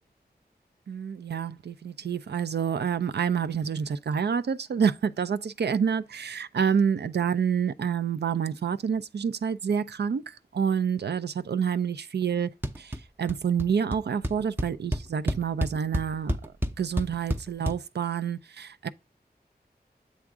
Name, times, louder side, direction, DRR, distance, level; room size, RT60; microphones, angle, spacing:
voice 1, 0.9-12.5 12.8-16.4 16.8-18.9, right 7 dB, 85° right, 0.4 m, -28 dB
sound 1, 12.6-13.0 13.3-13.7 13.9-14.0 14.2-17.8, equal, 10° right, 0.5 m, -29 dB
7.5 x 3.5 x 4.8 m
wide cardioid pair, 75°, 17 cm